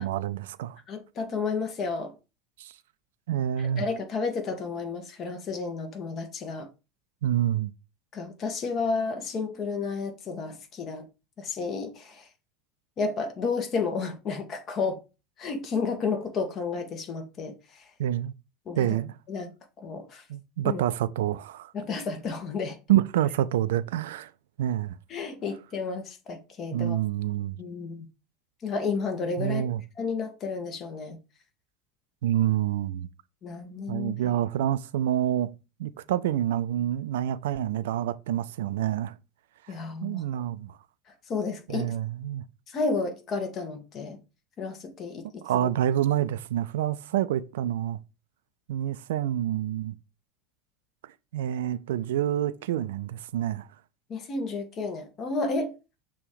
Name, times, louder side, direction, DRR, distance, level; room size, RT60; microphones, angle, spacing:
voice 1, 0.0-0.8 2.6-2.7 3.3-3.8 7.2-7.7 18.0-18.3 18.8-19.1 20.3-21.7 22.9-24.3 24.6-24.9 26.7-27.6 29.4-29.8 32.2-33.1 33.9-35.5 35.8-39.1 40.0-40.7 41.7-42.4 45.4-48.0 48.7-49.9 51.3-53.7, right 11 dB, 70° right, 0.4 m, -27 dB
voice 2, 0.9-2.1 3.6-6.7 8.1-11.0 11.4-12.2 13.0-15.0 15.4-17.5 18.7-18.9 19.3-19.5 19.8-20.2 20.6-20.8 21.7-22.8 25.1-27.0 27.6-28.0 28.6-29.7 30.0-31.2 33.4-34.3 39.7-40.4 41.3-41.9 42.7-44.2 44.6-45.2 45.6-45.7 54.1-55.7, left 4 dB, 40° left, 1.7 m, -31 dB
6.2 x 3.0 x 5.1 m
figure-of-eight pair, 75°, 0 cm